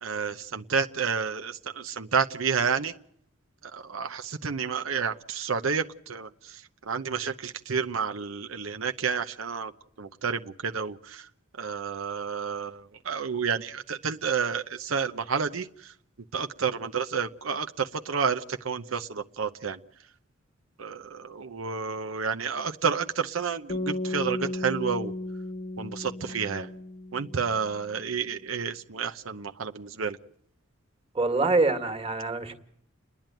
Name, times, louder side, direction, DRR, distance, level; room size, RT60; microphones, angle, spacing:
voice 1, 0.0-2.9 3.9-5.8 6.1-6.3 6.9-9.7 10.0-11.0 11.6-12.7 13.1-15.6 16.3-19.8 20.8-21.0 21.3-25.1 25.8-26.7 27.1-30.2, right 6 dB, 85° right, 6 dB, 0.8 m, -30 dB
sound 1, 23.7-27.9, left 2 dB, 35° left, 1.1 m, -35 dB
voice 2, 31.1-32.5, right 3 dB, 30° right, 7 dB, 1.9 m, -25 dB
30.0 x 10.5 x 9.1 m, 0.73 s
head